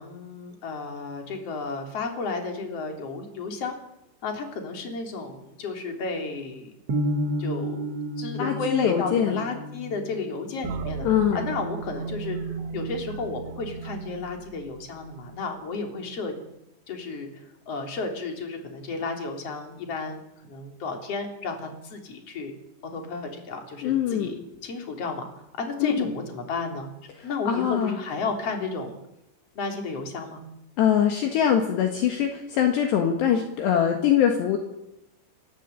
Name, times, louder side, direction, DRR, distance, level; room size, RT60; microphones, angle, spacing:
voice 1, 0.0-3.7 4.2-6.7 7.4-11.1 11.3-12.4 12.7-16.3 16.9-17.3 17.7-22.5 22.8-25.3 25.6-26.9 27.2-29.0 29.6-30.4, left 4 dB, 35° left, 3 dB, 3.9 m, -33 dB
sound 1, 6.9-13.0, equal, 85° right, 1.4 m, -33 dB
voice 2, 8.4-9.4 11.0-11.4 23.8-24.4 25.8-26.1 27.2-28.0 30.8-34.6, left 9 dB, 65° left, 4 dB, 3.5 m, -23 dB
sound 2, 10.6-15.3, right 5 dB, 70° right, 4.2 m, -35 dB
28.0 x 15.0 x 8.3 m, 0.89 s
omnidirectional pair, 5.8 m